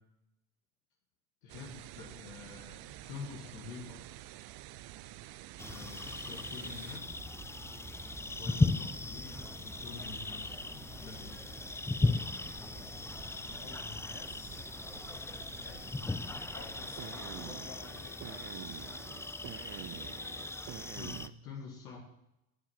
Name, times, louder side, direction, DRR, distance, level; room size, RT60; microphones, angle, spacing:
voice 1, 1.4-4.0 5.6-7.2 8.4-11.4 21.0-22.0, left 4 dB, 80° left, -2 dB, 2.2 m, -47 dB
sound 1, 1.5-21.3, right 15 dB, 50° right, 0.7 m, -50 dB
sound 2, 5.6-21.3, left 2 dB, 5° left, 0.5 m, -37 dB
voice 2, 12.5-13.2 13.6-14.7 15.6-15.9 16.5-18.2, left 6 dB, 55° left, 2 dB, 3.3 m, -52 dB
12.5 x 7.2 x 7.4 m, 0.86 s
hypercardioid pair, 65°, 47 cm